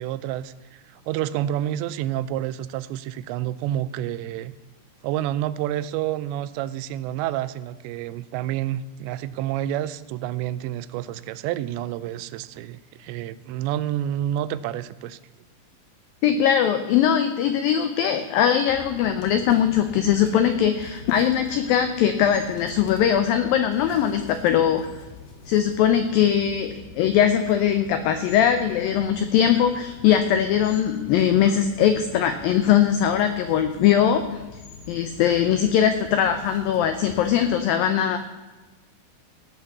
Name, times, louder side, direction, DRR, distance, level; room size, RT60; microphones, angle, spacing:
voice 1, 0.0-4.6 5.0-15.2, right 12 dB, 85° right, 16 dB, 2.8 m, -29 dB
voice 2, 16.2-24.8 25.5-34.2 34.9-38.2, left 9 dB, 90° left, 8 dB, 2.0 m, -21 dB
sound 1, 18.7-37.6, left 3 dB, 60° left, 3.6 m, -43 dB
17.0 x 5.8 x 6.8 m, 1.2 s
omnidirectional pair, 5.0 m